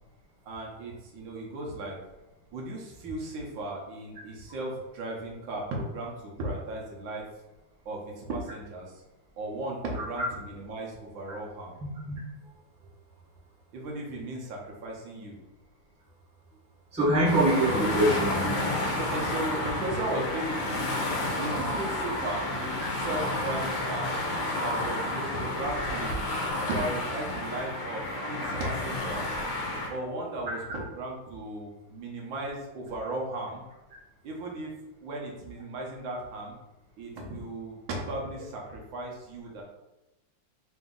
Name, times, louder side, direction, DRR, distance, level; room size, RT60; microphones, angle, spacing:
voice 1, 0.5-2.0 2.5-7.2 7.8-9.0 9.4-11.8 13.7-15.4 19.1-20.8 21.4-24.1 24.6-26.3 26.7-29.4 29.9-33.6 34.2-34.7 35.0-36.6 37.0-39.6, right 2 dB, 75° right, -1 dB, 1.5 m, -36 dB
voice 2, 16.9-19.0 28.4-28.5 30.5-30.6, right 1 dB, 5° right, -7 dB, 0.7 m, -25 dB
sound 1, 17.2-29.9, left 1 dB, 75° left, 1.4 m, -31 dB
3.9 x 2.6 x 3.7 m, 0.98 s
omnidirectional pair, 2.1 m